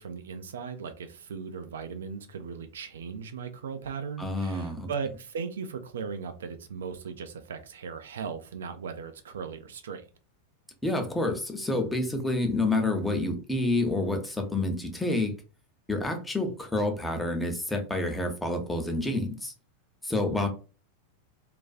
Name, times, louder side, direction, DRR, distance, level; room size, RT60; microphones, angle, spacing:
voice 1, 0.0-10.0, right 6 dB, 65° right, 0.3 m, -37 dB
voice 2, 4.2-4.9 10.8-15.3 15.9-19.5 20.0-20.5, left 2 dB, 5° left, 0.6 m, -28 dB
2.4 x 2.3 x 2.2 m
figure-of-eight pair, 90°, 0 cm